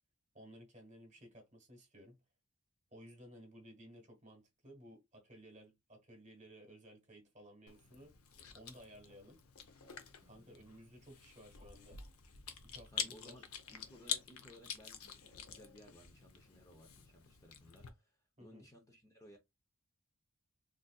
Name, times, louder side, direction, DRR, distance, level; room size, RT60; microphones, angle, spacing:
voice 1, 0.3-2.2 2.9-8.2 8.5-9.4 10.2-12.0 12.6-13.5 18.4-18.7, equal, 35° right, 1.3 m, -57 dB
Chewing mastication, 7.7-17.9, left 7 dB, 80° left, 0.6 m, -47 dB
voice 2, 10.2-10.6 12.9-19.4, left 1 dB, 15° left, 0.7 m, -60 dB
3.9 x 2.6 x 2.2 m
head